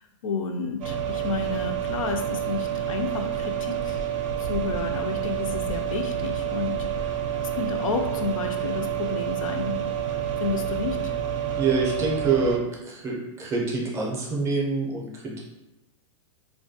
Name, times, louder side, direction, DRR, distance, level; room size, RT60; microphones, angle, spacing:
voice 1, 0.2-4.0 4.4-7.1 7.4-9.8 10.4-11.1, left 4 dB, 90° left, 5 dB, 0.4 m, -31 dB
sound 1, 0.8-12.6, right 9 dB, 70° right, 0.4 m, -29 dB
voice 2, 11.6-15.4, right 4 dB, 15° right, -3 dB, 0.5 m, -26 dB
2.2 x 2.2 x 2.6 m, 0.99 s
hypercardioid pair, 150°, 17 cm